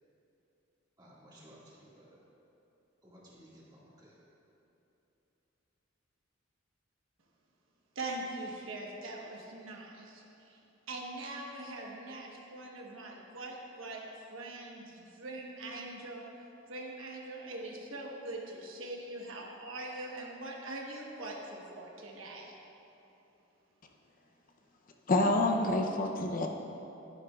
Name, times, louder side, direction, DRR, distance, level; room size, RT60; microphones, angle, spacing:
voice 1, 1.0-2.2 3.0-4.1, equal, 20° right, -7 dB, 1.9 m, -56 dB
voice 2, 7.9-10.6 10.9-14.0 14.3-16.2 16.7-22.5, right 2 dB, 85° right, -1 dB, 1.2 m, -42 dB
voice 3, 25.1-26.5, left 2 dB, 45° left, 2 dB, 0.6 m, -27 dB
11.0 x 10.0 x 2.4 m, 3.0 s
head